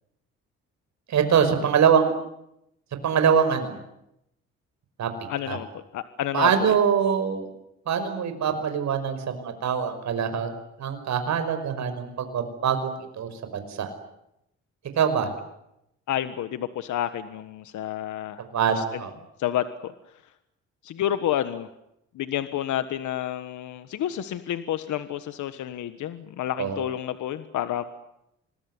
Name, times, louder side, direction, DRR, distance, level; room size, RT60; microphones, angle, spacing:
voice 1, 1.1-2.1 3.0-3.8 5.0-5.1 5.5-5.6 6.3-7.5 7.9-10.5 10.8-13.9 15.0-15.3 18.4-19.1 26.6-26.8, right 7 dB, 65° right, 8 dB, 5.5 m, -24 dB
voice 2, 5.3-6.7 16.1-18.4 18.8-19.0 19.4-19.9 20.8-21.7 22.1-27.8, left 11 dB, 80° left, 11 dB, 1.5 m, -30 dB
26.5 x 21.0 x 9.7 m, 0.83 s
cardioid pair, 90°, 30 cm